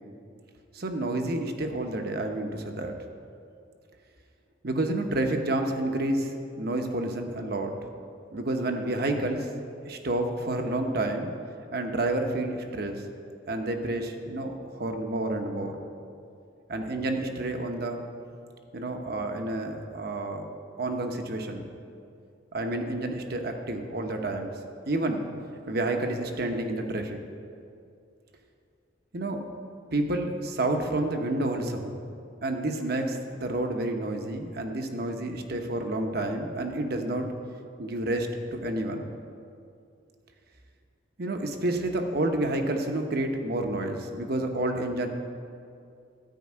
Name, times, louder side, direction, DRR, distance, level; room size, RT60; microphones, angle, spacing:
voice 1, 0.7-2.9 4.6-7.7 8.3-9.5 9.9-11.3 11.7-13.0 13.5-15.8 16.7-18.0 18.7-20.5 20.8-21.7 22.5-24.5 24.9-25.2 25.7-27.2 29.1-29.4 29.9-31.9 32.4-37.3 37.8-39.1 41.2-45.1, right 2 dB, 55° right, 4 dB, 1.0 m, -29 dB
13.0 x 5.4 x 8.6 m, 2.5 s
head